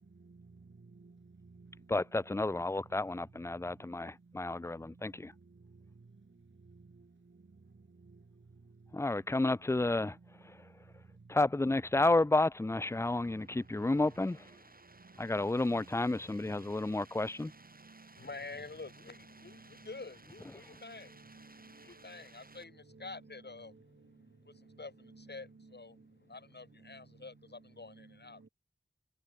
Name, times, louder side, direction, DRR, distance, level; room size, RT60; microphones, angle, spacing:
voice 1, 1.0-1.9 7.0-7.1 17.8-18.1 19.2-20.1 20.8-22.2 22.5-23.8 24.7-25.8 26.8-27.0 27.9-28.5, right 4 dB, 75° right, 5.8 m, -57 dB
voice 2, 1.9-5.3 8.9-10.1 11.3-14.4 15.2-17.5, left 2 dB, 15° left, 0.5 m, -31 dB
sound 1, 12.7-22.6, right 3 dB, 50° right, 5.9 m, -59 dB
voice 3, 18.2-21.1 21.8-23.7 24.8-24.9 25.3-25.9 26.3-28.4, left 3 dB, 60° left, 3.4 m, -48 dB
wide cardioid pair, 75°, 19 cm